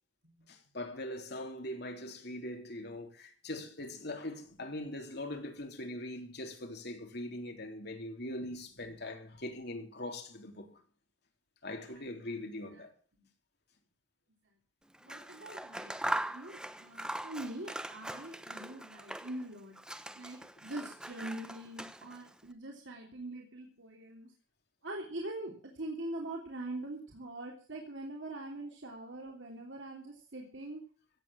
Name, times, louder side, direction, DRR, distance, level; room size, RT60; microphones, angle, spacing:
voice 1, 0.5-10.8 11.6-12.9 20.6-20.7, left 1 dB, 60° left, 3.6 m, -41 dB
voice 2, 11.7-12.0 15.0-19.7 20.2-24.3 24.8-30.8, right 1 dB, 80° right, 3.2 m, -43 dB
Scissors, 14.9-19.5 19.7-22.3, right 1 dB, 5° right, 0.9 m, -41 dB
16.5 x 8.1 x 7.6 m
head